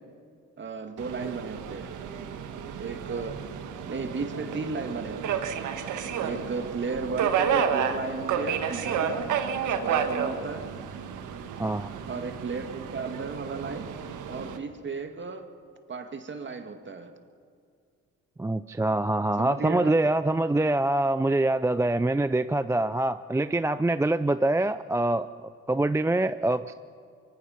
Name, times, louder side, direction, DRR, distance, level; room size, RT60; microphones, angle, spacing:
voice 1, 0.6-2.0 2.8-3.4 3.9-5.5 6.2-9.2 9.6-10.7 12.1-13.9 14.3-15.4 15.9-17.1 19.4-19.9, right 4 dB, 40° right, 6 dB, 2.1 m, -34 dB
Subway metro underground, 1.0-14.6, right 7 dB, 80° right, 1.7 m, -31 dB
voice 2, 11.6-11.9 18.4-26.7, right 2 dB, 10° right, 12 dB, 0.4 m, -25 dB
25.0 x 23.0 x 5.8 m, 2.4 s
cardioid pair, 90°, 30 cm